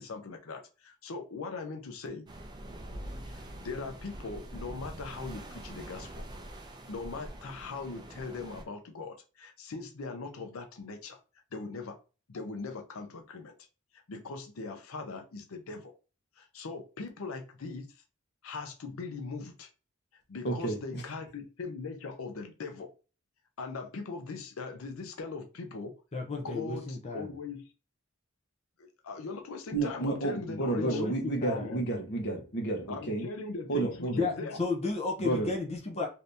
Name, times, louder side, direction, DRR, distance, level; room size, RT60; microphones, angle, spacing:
voice 1, 0.0-2.3 3.2-6.2 6.9-11.2 11.5-11.9 12.3-13.5 14.1-15.9 16.4-17.9 18.4-19.7 20.3-22.9 23.6-25.9 26.3-27.7 28.8-31.0 31.6-31.8 32.9-34.6, left 4 dB, 85° left, 0.6 m, -40 dB
sound 1, 2.3-8.6, right 1 dB, 20° right, 0.5 m, -44 dB
voice 2, 20.4-21.0 29.7-33.3 33.7-34.3 35.2-35.5, right 2 dB, 55° left, 0.9 m, -31 dB
voice 3, 26.1-27.3 30.8-31.8 34.1-36.1, left 3 dB, 30° left, 0.5 m, -33 dB
2.7 x 2.6 x 3.3 m
head